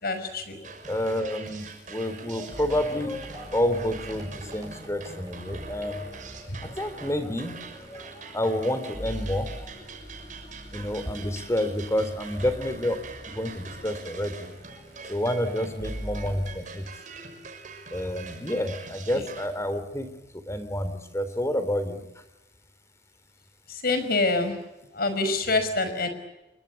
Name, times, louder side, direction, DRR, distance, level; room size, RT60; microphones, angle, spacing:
voice 1, 0.0-0.6 23.7-24.6 24.9-26.1, left 3 dB, 60° left, 10 dB, 5.7 m, -26 dB
sound 1, 0.6-19.5, right 4 dB, 45° right, 6.1 m, -44 dB
voice 2, 0.9-6.0 6.6-9.9 10.7-13.0 13.3-14.5 15.1-16.9 17.9-22.0, left 1 dB, 15° left, 11 dB, 3.5 m, -29 dB
sound 2, 2.5-16.6, equal, 20° right, 7.9 m, -43 dB
29.5 x 23.0 x 8.4 m, 0.99 s
head